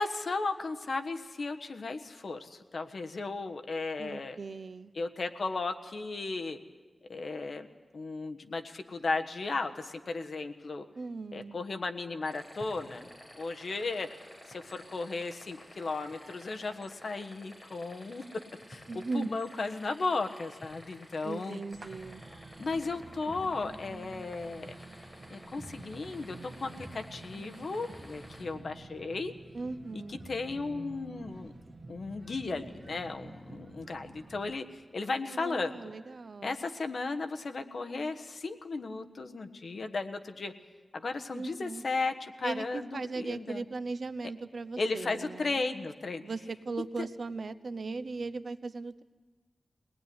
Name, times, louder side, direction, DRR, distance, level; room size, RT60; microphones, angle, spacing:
voice 1, 0.0-4.4 4.9-6.6 7.1-7.7 7.9-10.9 11.3-13.1 13.4-14.1 14.5-18.2 18.7-21.6 22.6-24.7 25.3-29.3 29.9-31.5 31.9-35.9 36.4-40.5 40.9-43.6 44.8-46.2 47.0-47.1, left 3 dB, 65° left, 6 dB, 1.3 m, -35 dB
voice 2, 4.0-4.9 11.0-11.5 18.9-19.3 21.2-22.2 29.5-30.2 35.3-36.6 41.3-41.8 42.4-45.6 46.2-49.0, right 3 dB, 65° right, 13 dB, 0.8 m, -38 dB
sound 1, 12.2-28.4, equal, 15° left, 6.4 m, -53 dB
sound 2, 21.7-34.6, right 3 dB, 45° right, 2.2 m, -49 dB
22.5 x 19.0 x 9.5 m, 1.4 s
wide cardioid pair, 110°, 0 cm